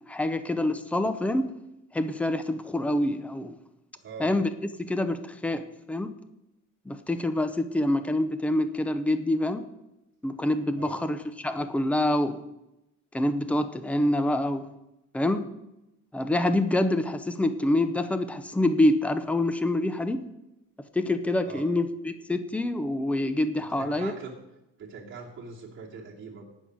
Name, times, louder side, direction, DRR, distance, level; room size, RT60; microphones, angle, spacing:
voice 1, 0.1-1.5 1.9-3.6 4.2-4.5 4.8-6.2 6.9-9.7 10.2-12.4 13.1-14.7 15.1-15.6 16.1-20.3 20.9-24.1, left 1 dB, 5° left, 10 dB, 0.5 m, -26 dB
voice 2, 4.0-4.3 10.8-11.0 21.4-21.7 23.7-24.3 24.8-26.5, right 5 dB, 40° right, -3 dB, 2.6 m, -42 dB
18.0 x 6.3 x 5.3 m, 0.92 s
cardioid pair, 165°, 30 cm